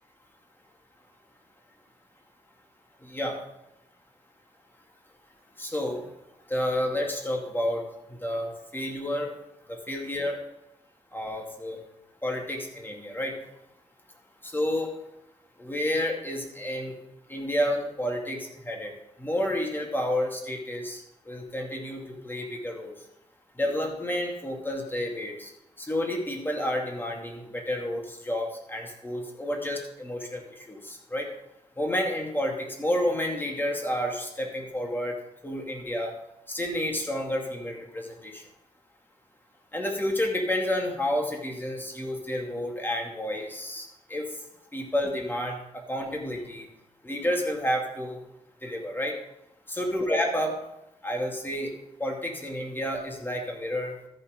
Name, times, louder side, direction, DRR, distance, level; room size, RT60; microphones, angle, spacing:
voice 1, 3.0-3.4 5.6-6.1 6.4-9.3 9.7-10.4 11.1-11.8 12.2-13.4 14.4-14.9 15.6-17.0 17.3-23.1 23.5-25.5 25.8-31.3 31.8-35.2 35.4-36.1 36.5-38.5 39.7-44.4 44.7-46.7 47.0-48.2 48.6-49.2 49.7-50.6 51.0-51.7 52.0-53.9, left 1 dB, 15° left, 0 dB, 2.4 m, -30 dB
13.5 x 5.8 x 5.1 m, 0.87 s
cardioid pair, 65°, 13 cm